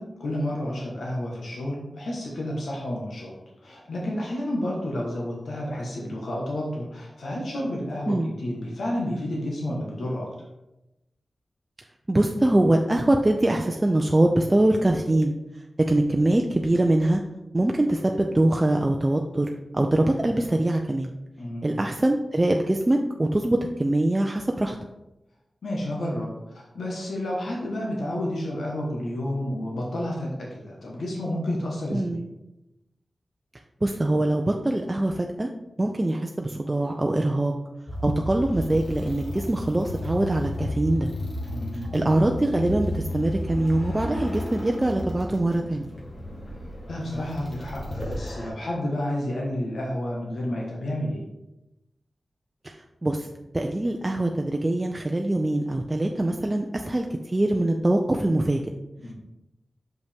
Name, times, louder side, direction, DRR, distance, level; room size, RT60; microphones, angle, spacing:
voice 1, 0.0-3.3 3.6-10.5 21.4-21.7 25.6-32.2 41.5-41.9 46.9-51.2 59.0-59.1, left 1 dB, 90° left, -3 dB, 1.4 m, -30 dB
voice 2, 12.1-15.3 15.8-17.2 17.5-19.5 19.7-21.1 21.6-24.8 31.9-32.2 33.8-35.5 35.8-37.5 38.0-41.1 41.9-45.9 52.6-53.3 53.5-58.6, right 1 dB, 25° right, 2 dB, 0.5 m, -23 dB
sound 1, 37.9-48.5, left 1 dB, 45° left, 1.6 m, -33 dB
6.4 x 5.2 x 3.5 m, 0.93 s
cardioid pair, 60°, 0 cm